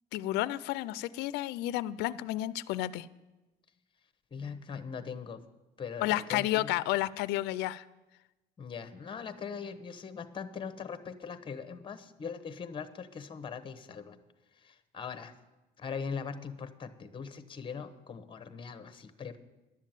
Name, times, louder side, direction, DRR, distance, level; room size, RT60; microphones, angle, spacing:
voice 1, 0.1-3.1 6.0-7.8, left 15 dB, 90° left, 18 dB, 0.4 m, -31 dB
voice 2, 4.3-5.4 5.8-6.7 8.6-14.2 14.6-15.3 15.8-19.4, left 6 dB, 30° left, 11 dB, 1.0 m, -41 dB
11.0 x 7.3 x 9.0 m, 1.1 s
cardioid pair, 110°, 17 cm